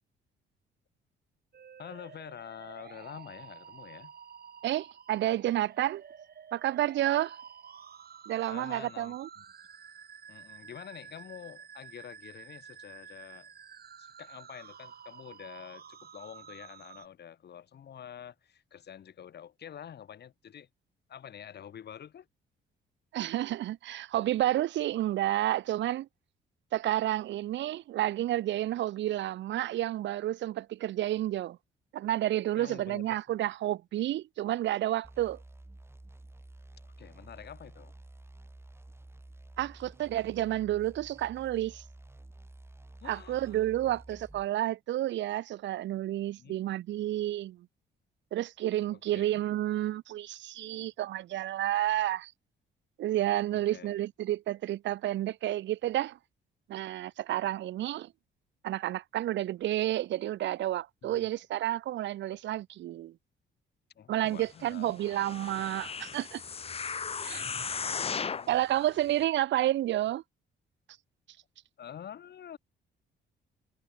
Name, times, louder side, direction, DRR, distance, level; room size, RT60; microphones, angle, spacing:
sound 1, 1.5-17.1, right 7 dB, 50° right, 7.1 m, -51 dB
voice 1, 1.8-4.1 8.5-9.4 10.3-13.5 14.0-20.7 21.1-22.3 32.6-33.1 37.0-37.9 43.0-44.0 46.3-46.6 48.9-49.4 53.5-53.9 61.0-61.3 64.0-65.0 66.7-66.8 67.2-68.5 71.8-72.6, left 9 dB, 55° left, 2.4 m, -47 dB
voice 2, 4.6-6.0 6.5-7.4 8.3-9.3 23.1-26.1 26.7-31.6 31.9-35.4 39.6-41.8 43.0-47.7 48.3-52.3 53.0-56.2 56.7-58.1 58.6-63.1 64.1-66.4 67.2-67.4 68.5-70.2, right 13 dB, 65° right, 0.6 m, -30 dB
sound 2, 35.0-44.5, right 2 dB, 10° right, 6.4 m, -51 dB
sound 3, 65.0-68.5 69.1-69.2, left 6 dB, 30° left, 0.7 m, -36 dB
cardioid pair, 90°, 20 cm